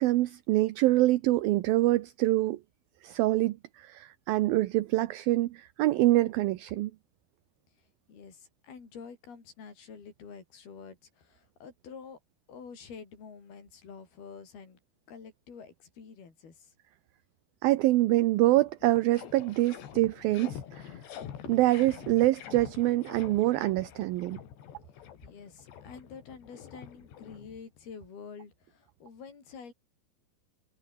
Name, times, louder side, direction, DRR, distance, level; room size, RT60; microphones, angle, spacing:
voice 1, 0.0-2.6 3.0-6.9 17.6-20.8 21.5-24.4, right 17 dB, 75° right, 2.4 m, -25 dB
voice 2, 7.8-12.2 12.5-14.8 15.1-16.7 25.2-29.7, left 6 dB, 65° left, 7.3 m, -48 dB
sound 1, 18.1-18.2 18.5-27.9, left 9 dB, 90° left, 4.9 m, -46 dB
omnidirectional pair, 4.8 m